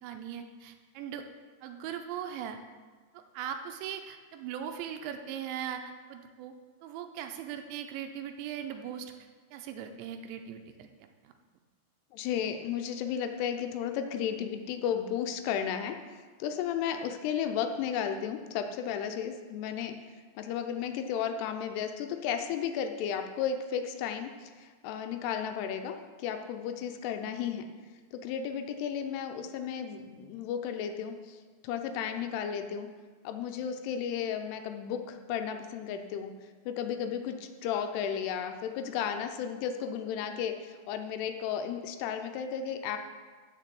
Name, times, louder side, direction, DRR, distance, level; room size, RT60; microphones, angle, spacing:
voice 1, 0.0-1.3 1.6-2.6 3.1-6.5 6.8-9.1 9.5-10.9 11.2-11.3, right 9 dB, 90° right, 5 dB, 2.9 m, -39 dB
voice 2, 12.1-16.0 16.4-20.0 20.4-27.7 28.1-31.4 31.6-32.9 33.2-36.3 36.7-43.0, left 8 dB, 80° left, 6 dB, 2.5 m, -34 dB
7.0 x 6.6 x 7.5 m, 1.5 s
omnidirectional pair, 5.2 m